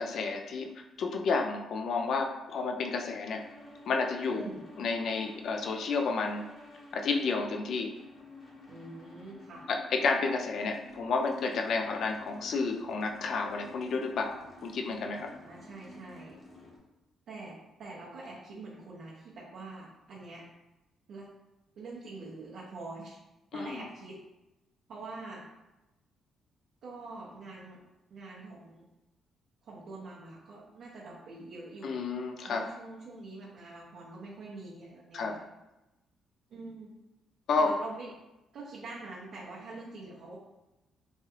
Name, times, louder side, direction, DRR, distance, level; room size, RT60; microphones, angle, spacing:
voice 1, 0.0-3.4 3.9-4.5 4.8-6.5 6.9-7.9 9.7-15.3 23.5-23.8 31.8-32.6 35.1-35.4 37.5-37.7, left 4 dB, 65° left, 3 dB, 0.3 m, -31 dB
sound 1, 3.3-16.8, left 1 dB, 35° left, 0.9 m, -52 dB
voice 2, 8.7-9.6 15.1-16.4 17.3-20.4 21.1-21.3 21.8-23.2 23.5-24.2 24.9-25.4 26.8-27.8 28.1-28.9 29.6-32.0 32.4-35.4 36.5-36.9 37.6-38.1 38.5-40.4, right 3 dB, 70° right, -6 dB, 0.7 m, -45 dB
3.1 x 2.3 x 2.9 m, 0.98 s
cardioid pair, 90°, 0 cm